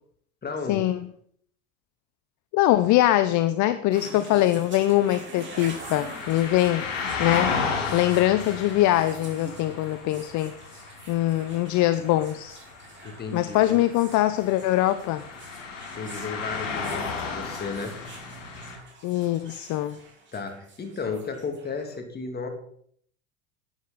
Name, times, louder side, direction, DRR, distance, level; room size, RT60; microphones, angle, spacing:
voice 1, 0.4-0.9 13.0-13.8 15.9-17.9 20.3-22.5, left 4 dB, 25° left, 4 dB, 2.7 m, -34 dB
voice 2, 2.5-6.9 7.2-7.5 7.9-12.6 13.3-15.2 19.0-20.0, left 14 dB, 50° left, 13 dB, 0.8 m, -23 dB
sound 1, 3.9-22.0, right 3 dB, 30° right, 4.5 m, -46 dB
sound 2, 5.5-18.8, left 5 dB, 90° left, 5.0 m, -34 dB
12.0 x 9.6 x 4.2 m, 0.64 s
supercardioid pair, 95°, 37 cm